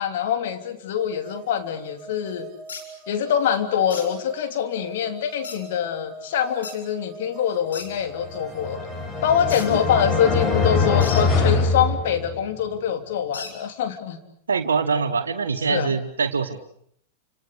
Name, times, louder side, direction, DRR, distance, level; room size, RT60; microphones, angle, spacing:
voice 1, 0.0-2.5 3.1-8.8 9.2-14.2 15.7-15.9, left 8 dB, 60° left, 7 dB, 3.2 m, -24 dB
sound 1, 1.0-10.7, right 5 dB, 30° right, 6.7 m, -42 dB
sound 2, 2.7-2.8 3.9-4.1 5.4-5.6 6.6-6.8 7.7-7.9 9.5-9.7 11.0-11.3 13.3-13.5, left 5 dB, 75° left, 5.2 m, -35 dB
sound 3, 8.2-12.6, left 4 dB, 30° left, 4.5 m, -23 dB
voice 2, 14.5-16.6, right 5 dB, 80° right, 8 dB, 1.7 m, -24 dB
29.5 x 27.0 x 6.7 m, 0.65 s
hypercardioid pair, 100°, 0 cm